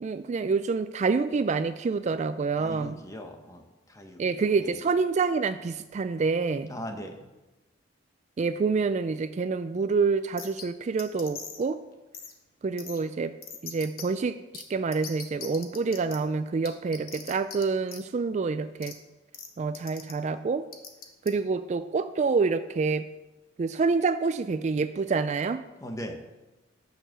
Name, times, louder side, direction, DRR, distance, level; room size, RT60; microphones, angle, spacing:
voice 1, 0.0-3.0 4.2-6.7 8.4-11.8 12.6-13.3 13.6-19.0 19.6-20.7 21.3-23.0 23.6-25.6, right 4 dB, 35° right, 11 dB, 0.3 m, -27 dB
voice 2, 2.6-3.6 3.9-4.2 4.6-4.7 6.7-7.2 25.8-26.2, equal, 15° left, 5 dB, 1.0 m, -39 dB
sound 1, 10.4-10.6 11.0-11.6 12.1-12.3 12.8-13.0 13.4-14.0 14.5-14.6 14.9-16.2 16.6-17.6 17.9-18.0 18.8-18.9 19.3-19.5 19.7-20.1 20.7-21.3, left 7 dB, 50° left, 1.2 m, -40 dB
9.1 x 6.7 x 6.5 m, 1.1 s
head